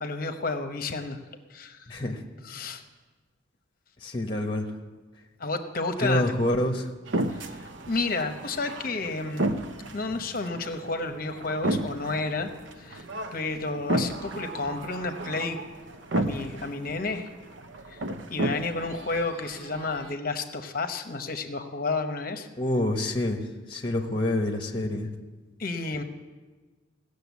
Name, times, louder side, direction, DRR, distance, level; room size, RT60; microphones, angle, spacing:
voice 1, 0.0-1.2 1.5-2.0 2.4-2.8 5.4-6.3 7.3-9.5 9.9-12.5 12.8-13.0 13.3-15.6 16.1-17.3 17.9-18.0 18.3-22.5 25.6-26.0, left 3 dB, 45° left, 7 dB, 0.9 m, -31 dB
voice 2, 1.9-2.2 4.0-4.7 6.0-6.9 22.6-23.4 23.7-25.1, left 1 dB, 25° left, 3 dB, 1.1 m, -27 dB
sound 1, 7.1-20.1, right 1 dB, 70° right, 0.8 m, -33 dB
17.0 x 6.7 x 8.2 m, 1.3 s
head